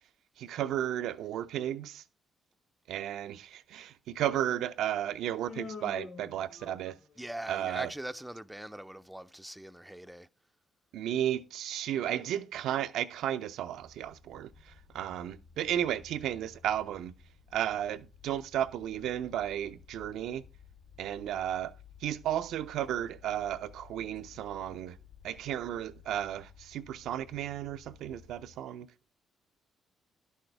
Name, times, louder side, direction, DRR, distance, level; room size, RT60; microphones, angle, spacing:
voice 1, 0.4-2.0 2.9-7.0 7.5-7.9 10.9-17.1 17.5-20.4 21.0-21.7 22.0-25.0 25.2-28.9, right 11 dB, 80° right, 0.5 m, -34 dB
Human voice, 5.5-7.2, left 4 dB, 55° left, 2.4 m, -44 dB
voice 2, 7.2-10.3, right 1 dB, 5° right, 0.4 m, -41 dB
sound 1, 13.7-28.6, left 7 dB, 70° left, 1.7 m, -56 dB
11.0 x 6.5 x 3.4 m
cardioid pair, 90°, 0 cm